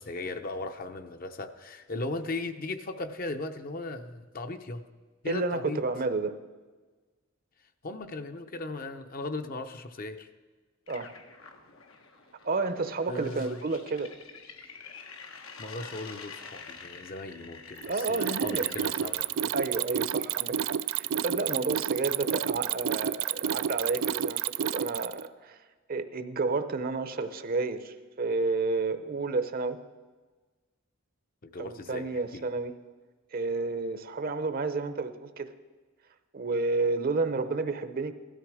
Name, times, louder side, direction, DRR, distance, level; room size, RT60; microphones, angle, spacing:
voice 1, 0.0-4.8 5.2-5.8 7.8-10.3 13.1-13.6 15.6-19.5 31.4-32.5, left 2 dB, 45° left, 7 dB, 0.7 m, -37 dB
voice 2, 5.3-6.4 10.9-11.1 12.4-14.1 17.9-18.6 19.5-25.6 25.9-29.8 31.6-32.7 33.3-35.5 36.3-38.1, right 3 dB, 45° right, 11 dB, 0.7 m, -31 dB
sound 1, 10.9-19.7, left 5 dB, 90° left, 1.4 m, -47 dB
Mechanisms, 17.8-25.3, right 9 dB, 70° right, 0.4 m, -30 dB
16.5 x 12.5 x 4.9 m, 1.4 s
head